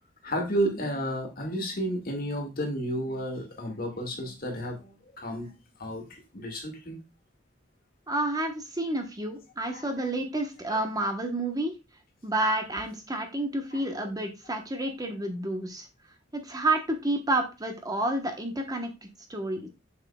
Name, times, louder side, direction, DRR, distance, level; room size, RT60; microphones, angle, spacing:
voice 1, 0.2-5.5 5.8-7.0 9.7-10.1 13.7-13.8, equal, 50° left, 2 dB, 2.0 m, -32 dB
voice 2, 8.1-11.7 12.2-15.9 16.3-19.7, right 1 dB, 20° right, 4 dB, 1.0 m, -30 dB
7.1 x 6.2 x 2.3 m, 0.26 s
head